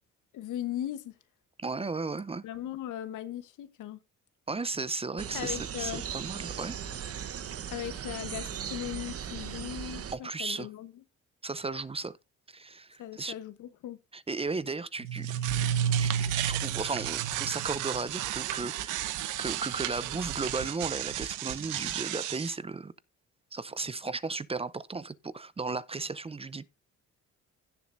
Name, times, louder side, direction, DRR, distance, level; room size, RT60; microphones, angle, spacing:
voice 1, 0.3-1.2 2.4-4.0 5.3-6.0 7.7-10.9 13.0-14.0, left 12 dB, 80° left, 1.2 m, -38 dB
voice 2, 1.6-2.4 4.5-6.8 10.1-10.7 11.4-12.2 12.5-13.3 14.1-15.3 15.5-15.7 16.0-19.1 19.4-22.9 23.5-26.7, right 3 dB, 20° right, 0.6 m, -35 dB
sound 1, 5.2-10.2, right 8 dB, 50° right, 1.0 m, -38 dB
sound 2, 15.0-22.5, right 10 dB, 90° right, 0.9 m, -32 dB
16.5 x 7.2 x 2.6 m
cardioid pair, 90°, 30 cm